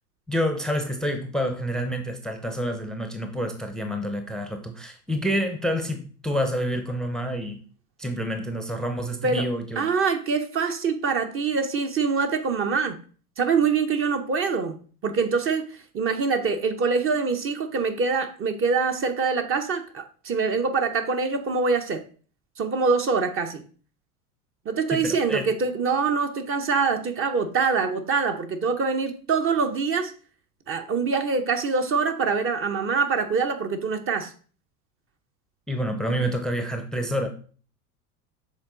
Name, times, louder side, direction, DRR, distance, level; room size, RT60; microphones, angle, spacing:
voice 1, 0.3-7.6 8.0-9.9 24.9-25.5 35.7-37.3, equal, ahead, 0.7 m, -28 dB
voice 2, 9.8-13.0 13.4-22.0 22.6-23.6 24.7-30.1 30.7-34.3, right 5 dB, 30° right, 0.7 m, -24 dB
7.3 x 3.7 x 3.8 m
hypercardioid pair, 85°, 47 cm